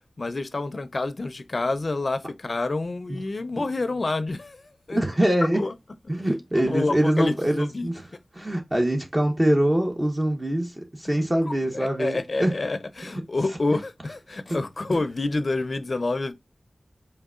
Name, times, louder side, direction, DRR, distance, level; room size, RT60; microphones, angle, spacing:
voice 1, 0.2-4.6 4.9-5.0 5.4-5.7 6.6-7.9 11.2-16.3, left 2 dB, 60° left, 0.5 m, -28 dB
voice 2, 4.9-5.6 6.1-12.5 13.0-13.1 13.7-13.8 14.9-15.0, right 1 dB, 30° right, 0.9 m, -24 dB
4.4 x 3.6 x 2.3 m
cardioid pair, 45°, 0 cm